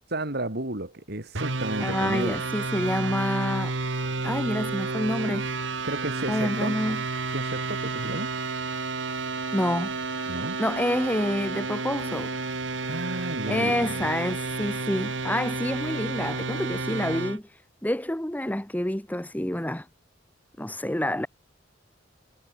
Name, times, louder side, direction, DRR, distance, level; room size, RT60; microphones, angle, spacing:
voice 1, 0.1-2.4 5.8-6.8 7.3-8.3 10.3-10.6 12.9-14.0, right 1 dB, 60° right, 4.6 m, -32 dB
sound 1, 1.3-17.4, right 3 dB, 80° right, 2.0 m, -31 dB
voice 2, 1.8-3.7 4.2-5.5 6.3-7.0 9.5-9.9 10.6-12.3 13.5-19.9 20.6-21.3, left 1 dB, 10° left, 1.4 m, -28 dB
head